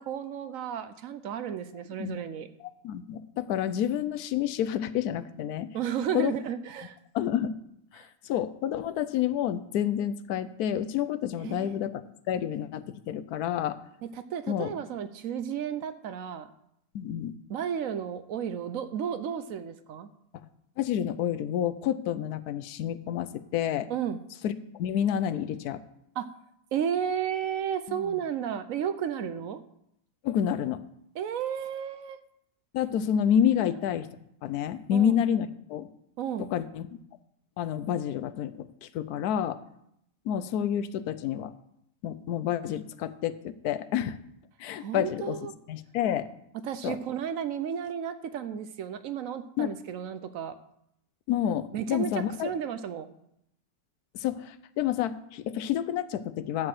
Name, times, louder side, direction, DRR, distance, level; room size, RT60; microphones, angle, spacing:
voice 1, 0.0-2.5 5.7-7.0 8.0-8.1 11.4-11.8 14.3-16.5 17.5-20.1 23.9-24.2 26.2-26.3 26.7-29.6 31.2-32.2 34.9-35.1 36.2-36.5 44.8-45.5 46.6-50.5 51.7-52.1 52.4-53.1, right 8 dB, 65° right, 11 dB, 1.0 m, -33 dB
voice 2, 2.6-5.8 6.1-6.3 7.1-7.5 7.9-12.0 12.3-13.8 14.5-14.7 16.9-17.3 20.8-23.9 24.4-25.8 27.9-28.2 30.2-30.8 32.7-34.1 34.4-35.9 36.4-36.9 37.6-39.6 40.2-41.5 42.0-44.2 44.6-45.4 45.7-46.3 46.8-47.0 49.6-49.8 51.3-52.5 54.1-56.7, left 10 dB, 80° left, 13 dB, 1.1 m, -29 dB
11.5 x 4.7 x 7.5 m, 0.76 s
omnidirectional pair, 1.6 m